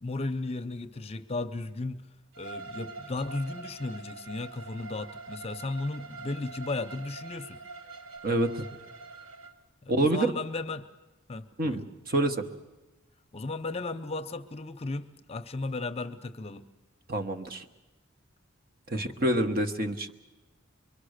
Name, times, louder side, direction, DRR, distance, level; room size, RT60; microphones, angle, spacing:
voice 1, 0.0-2.1 2.4-7.6 9.8-10.9 11.3-11.8 13.3-16.7 18.9-19.5, left 3 dB, 30° left, 9 dB, 0.7 m, -35 dB
Bowed string instrument, 2.3-9.5, right 3 dB, 70° right, 1.3 m, -44 dB
voice 2, 8.2-8.7 9.9-10.3 11.6-11.8 12.1-12.4 17.1-17.7 18.9-20.1, right 1 dB, 45° right, 7 dB, 1.2 m, -27 dB
24.0 x 23.5 x 6.6 m, 1.1 s
head